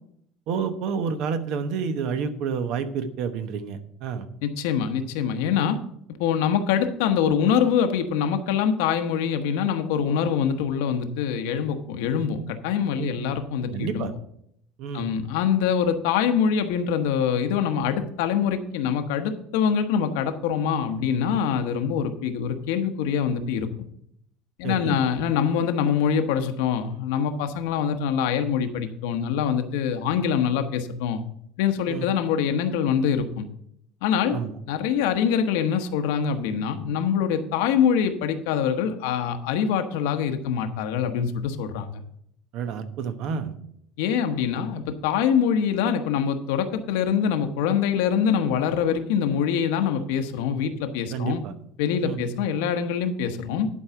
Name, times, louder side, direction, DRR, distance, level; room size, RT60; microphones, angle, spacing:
voice 1, 0.5-4.3 13.0-13.2 13.7-14.1 14.8-15.1 24.6-25.0 31.9-32.1 34.3-34.5 42.5-43.5 51.1-51.5 52.0-52.2, right 6 dB, 55° right, 10 dB, 1.0 m, -29 dB
voice 2, 4.4-5.8 6.2-14.1 14.9-23.9 24.6-31.2 31.6-33.5 34.0-34.4 34.7-42.0 44.0-51.4 51.8-53.7, left 7 dB, 85° left, 7 dB, 1.1 m, -24 dB
11.0 x 4.7 x 6.8 m, 0.72 s
cardioid pair, 160°, 0 cm